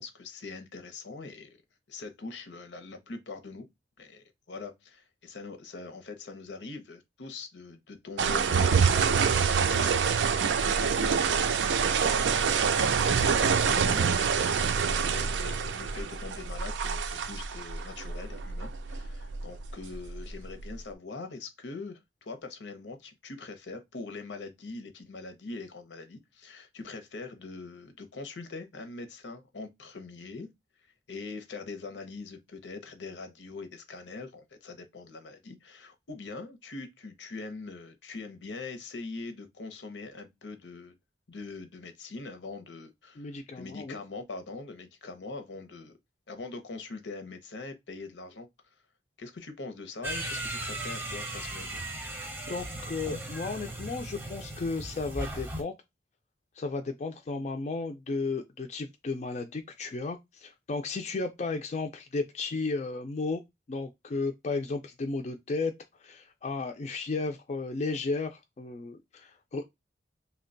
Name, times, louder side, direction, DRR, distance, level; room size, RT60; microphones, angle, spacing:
voice 1, 0.0-1.6 1.9-3.7 4.0-11.5 11.9-14.6 15.0-30.5 31.1-40.9 41.3-43.3 43.5-46.0 46.3-48.5 49.2-51.8, left 3 dB, 80° left, 0.7 m, -42 dB
sound 1, 8.2-20.7, right 6 dB, 80° right, 0.4 m, -26 dB
voice 2, 43.2-44.0 52.5-55.7 56.6-63.4 63.7-69.7, left 3 dB, 40° left, 0.4 m, -34 dB
sound 2, 50.0-55.6, right 1 dB, 15° right, 0.7 m, -37 dB
2.9 x 2.2 x 3.8 m
head